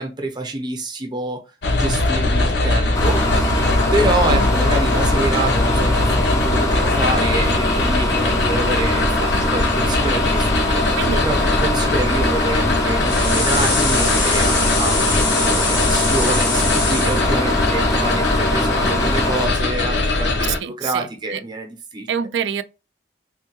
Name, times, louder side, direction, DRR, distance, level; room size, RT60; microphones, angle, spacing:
voice 1, 0.0-1.4 1.7-3.5 3.9-10.8 11.2-22.1, right 2 dB, 25° right, 0.7 m, -27 dB
sound 1, 1.6-20.6, left 2 dB, 75° left, 0.7 m, -21 dB
sound 2, 2.9-19.5, left 1 dB, 20° left, 0.4 m, -23 dB
voice 2, 10.9-11.3 20.6-21.4 22.1-22.6, right 7 dB, 80° right, 0.3 m, -26 dB
sound 3, 13.1-17.2, left 3 dB, 90° left, 1.2 m, -24 dB
3.5 x 2.2 x 2.9 m
head